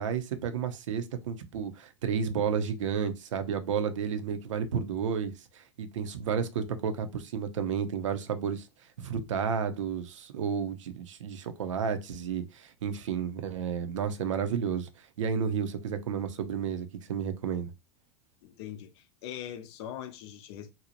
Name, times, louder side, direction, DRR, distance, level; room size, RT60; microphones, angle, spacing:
voice 1, 0.0-8.7 9.0-14.9 15.2-17.7, right 7 dB, 85° right, 0.5 m, -32 dB
voice 2, 18.4-20.7, left 10 dB, 65° left, 0.6 m, -41 dB
2.6 x 2.0 x 2.8 m
hypercardioid pair, 100°, 16 cm